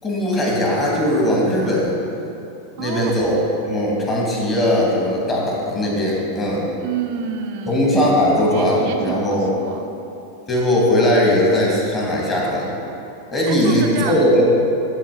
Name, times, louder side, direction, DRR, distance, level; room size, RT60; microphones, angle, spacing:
voice 1, 0.0-2.0 2.8-6.7 7.7-9.5 10.5-12.7 13.3-14.5, left 1 dB, 25° left, -3 dB, 2.4 m, -19 dB
voice 2, 2.8-3.3 6.8-7.8 8.5-9.9 13.4-14.3, right 7 dB, 50° right, 4 dB, 0.6 m, -28 dB
11.5 x 4.6 x 6.0 m, 2.8 s
figure-of-eight pair, 90°, 0 cm